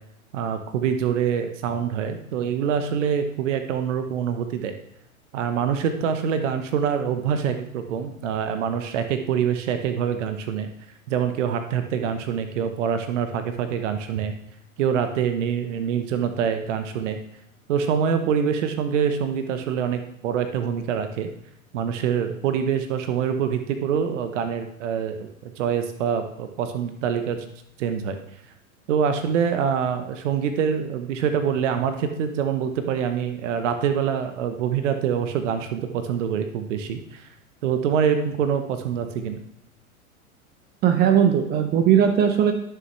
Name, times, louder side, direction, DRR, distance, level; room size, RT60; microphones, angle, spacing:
voice 1, 0.3-4.8 5.3-10.7 11.1-14.4 14.8-17.2 17.7-21.3 21.7-27.5 27.8-28.2 28.9-37.2 37.6-39.4, right 7 dB, 55° right, 8 dB, 1.0 m, -25 dB
voice 2, 40.8-42.5, right 9 dB, 25° right, 6 dB, 0.6 m, -18 dB
10.5 x 6.7 x 3.2 m, 0.78 s
figure-of-eight pair, 100°, 43 cm